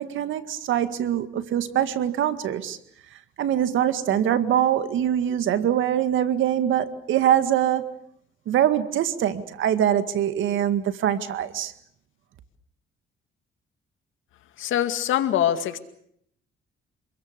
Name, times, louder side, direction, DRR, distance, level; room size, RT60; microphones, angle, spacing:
voice 1, 0.0-2.8 3.4-7.9 8.5-11.7, right 10 dB, 80° right, 2.0 m, -23 dB
voice 2, 14.6-15.8, left 11 dB, 80° left, 2.2 m, -23 dB
27.5 x 22.0 x 6.8 m
cardioid pair, 90°, 20 cm